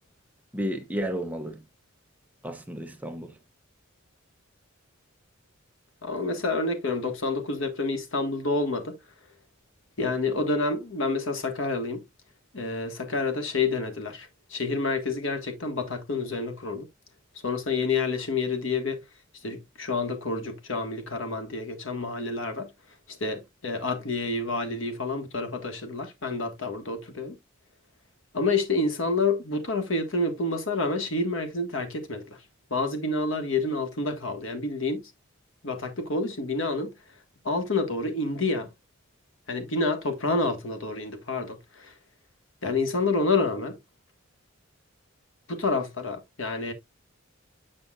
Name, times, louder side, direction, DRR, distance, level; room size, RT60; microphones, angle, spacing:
voice 1, 0.5-1.6 2.4-3.3, equal, 10° right, 0.8 m, -32 dB
voice 2, 6.0-9.0 10.0-12.0 12.5-16.9 17.4-19.0 19.4-22.7 23.1-27.4 28.3-32.4 32.7-35.0 35.6-36.9 37.4-38.7 39.5-41.9 42.6-43.8 45.5-46.7, left 3 dB, 70° left, 1.5 m, -28 dB
7.9 x 5.7 x 2.4 m
head